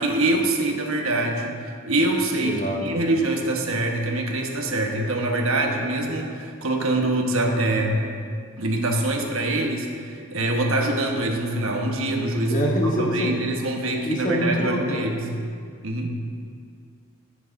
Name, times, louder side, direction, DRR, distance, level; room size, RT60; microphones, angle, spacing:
voice 1, 0.0-8.0 8.6-15.2 15.8-16.1, right 2 dB, 70° right, 1 dB, 1.2 m, -24 dB
voice 2, 2.4-3.0 12.4-13.3 14.0-15.0, equal, 35° left, -1 dB, 1.3 m, -25 dB
15.0 x 9.4 x 2.7 m, 2.2 s
head